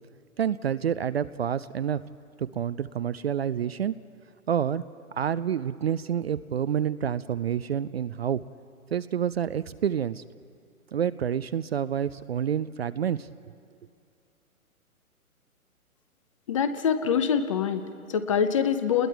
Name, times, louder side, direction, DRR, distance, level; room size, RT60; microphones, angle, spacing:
voice 1, 0.4-2.0 2.4-4.0 4.5-4.8 5.1-8.4 8.9-10.2 10.9-13.3, right 9 dB, 45° right, 16 dB, 0.4 m, -28 dB
voice 2, 16.5-19.1, left 7 dB, 25° left, 11 dB, 0.5 m, -25 dB
29.5 x 20.5 x 4.6 m, 2.4 s
figure-of-eight pair, 130°, 43 cm